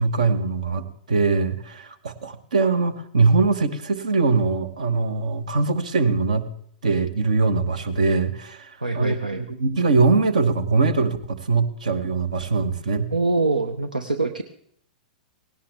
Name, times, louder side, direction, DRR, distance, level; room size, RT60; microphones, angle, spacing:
voice 1, 0.0-6.5 6.8-13.1, right 4 dB, 65° right, 13 dB, 1.2 m, -22 dB
voice 2, 8.8-9.4 13.1-14.4, right 3 dB, 80° right, 10 dB, 0.7 m, -24 dB
18.0 x 17.5 x 3.4 m, 0.67 s
figure-of-eight pair, 100°, 4 cm